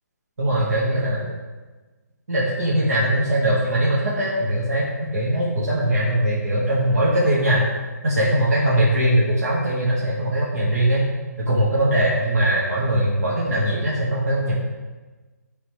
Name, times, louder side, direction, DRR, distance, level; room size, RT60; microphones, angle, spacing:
voice 1, 0.4-1.4 2.3-7.6 8.0-11.0 11.5-14.5, right 1 dB, 60° right, -7 dB, 1.9 m, -21 dB
12.0 x 4.1 x 3.4 m, 1.3 s
hypercardioid pair, 165°, 9 cm